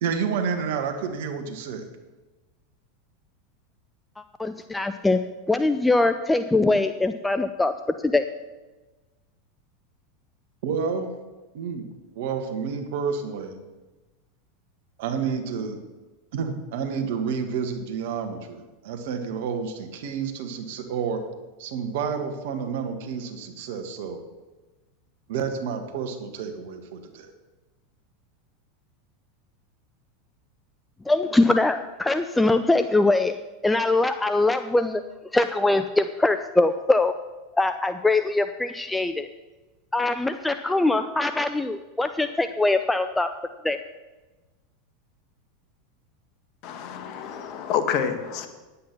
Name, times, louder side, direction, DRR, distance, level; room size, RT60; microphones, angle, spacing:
voice 1, 0.0-1.9 10.6-11.1 11.5-11.9 12.1-13.6 15.0-15.8 16.3-21.2 21.6-24.2 25.3-27.3, right 6 dB, 65° right, 7 dB, 1.6 m, -29 dB
voice 2, 4.4-5.2 5.5-7.7 8.0-8.2 31.1-33.3 33.6-35.0 35.3-37.1 37.5-39.3 39.9-43.3 43.6-43.8, left 2 dB, 10° left, 10 dB, 0.5 m, -22 dB
voice 3, 46.6-48.5, left 7 dB, 50° left, 7 dB, 1.5 m, -28 dB
10.0 x 8.5 x 6.0 m, 1.2 s
hypercardioid pair, 90°, 0 cm